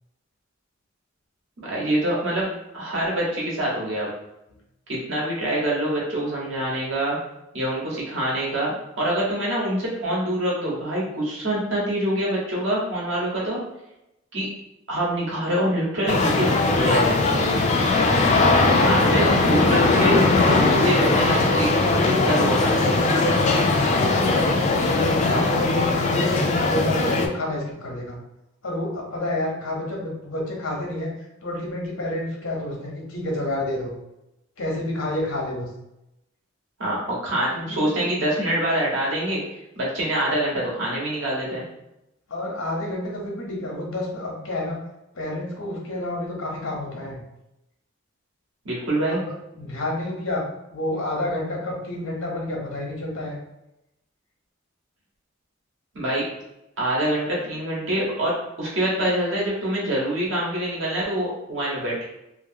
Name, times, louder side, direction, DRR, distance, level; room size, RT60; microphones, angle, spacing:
voice 1, 1.6-2.5 2.7-4.1 4.9-7.2 7.5-13.6 14.3-14.5 14.9-16.5 16.8-17.6 18.8-23.0 36.8-39.4 39.7-41.6 48.6-49.2 55.9-56.3 56.8-62.0, right 1 dB, 65° right, -4 dB, 1.2 m, -25 dB
sound 1, 16.1-27.3, left 3 dB, 35° left, 0.4 m, -20 dB
voice 2, 18.4-19.6 23.4-25.6 26.0-28.2 28.6-31.1 31.4-33.9 34.6-35.7 37.5-37.9 42.3-44.8 45.1-47.2 49.1-50.4 50.7-53.4, left 1 dB, 85° left, 0 dB, 0.9 m, -29 dB
2.8 x 2.6 x 2.7 m, 0.88 s
head